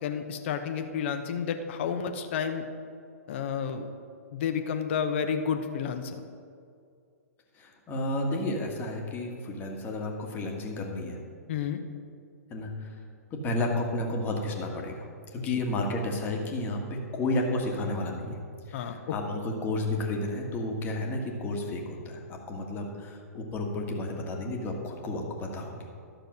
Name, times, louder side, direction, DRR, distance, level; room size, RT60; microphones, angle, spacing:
voice 1, 0.0-2.7 3.3-3.9 4.3-6.2 11.5-11.8 15.4-15.6 18.7-19.4, left 7 dB, 45° left, 7 dB, 0.9 m, -31 dB
voice 2, 7.5-11.2 12.5-13.0 13.4-15.1 15.3-18.4 18.7-26.1, left 1 dB, 20° left, 1 dB, 1.6 m, -32 dB
12.0 x 6.5 x 6.2 m, 2.3 s
figure-of-eight pair, 115°, 9 cm